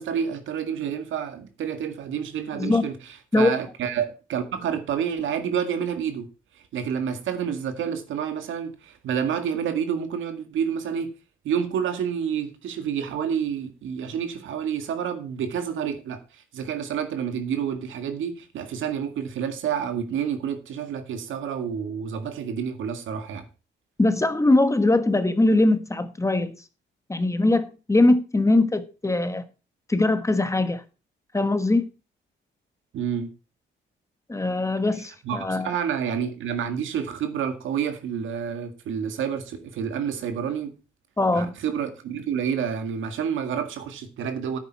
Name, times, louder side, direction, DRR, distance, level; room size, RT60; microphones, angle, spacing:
voice 1, 0.0-2.9 3.4-6.3 6.7-11.1 11.4-23.5 32.9-33.3 35.2-40.7 41.3-44.6, right 8 dB, 80° right, 1.9 m, -29 dB
voice 2, 24.0-26.6 27.1-29.4 29.9-30.8 31.3-31.9 34.3-35.7 41.2-41.5, left 2 dB, 15° left, 1.3 m, -21 dB
10.5 x 8.6 x 4.6 m
cardioid pair, 90°, 20 cm